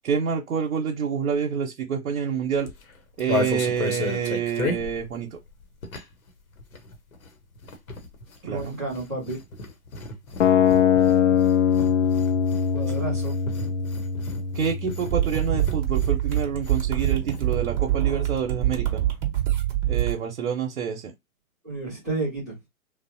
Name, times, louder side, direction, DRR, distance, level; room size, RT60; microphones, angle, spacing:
voice 1, 0.0-2.7 3.2-5.3 8.5-8.8 14.5-19.0 19.9-21.1, right 7 dB, 70° right, 0.8 m, -27 dB
sound 1, 2.6-6.3 6.5-17.5 17.7-17.8 18.0-18.4, left 3 dB, 75° left, 1.0 m, -34 dB
voice 2, 8.4-9.4 12.7-13.4 21.6-22.5, right 2 dB, ahead, 0.4 m, -31 dB
sound 2, 10.4-16.4, left 8 dB, 60° left, 0.5 m, -23 dB
sound 3, 15.1-20.1, right 13 dB, 25° right, 0.8 m, -25 dB
3.2 x 2.1 x 2.6 m
figure-of-eight pair, 125°, 42 cm